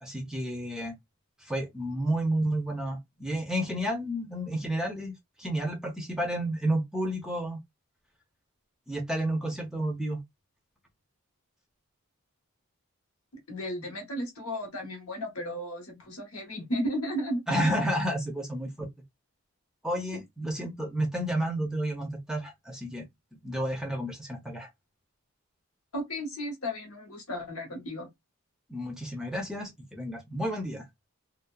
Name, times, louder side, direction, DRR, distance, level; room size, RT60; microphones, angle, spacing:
voice 1, 0.0-0.9 1.4-5.1 5.4-7.6 8.9-10.2 17.5-18.9 19.8-23.0 23.4-24.7 28.7-31.1, right 1 dB, 5° right, 0.6 m, -31 dB
voice 2, 13.5-17.4 25.9-28.1, equal, 75° left, 1.0 m, -34 dB
2.8 x 2.0 x 2.3 m
head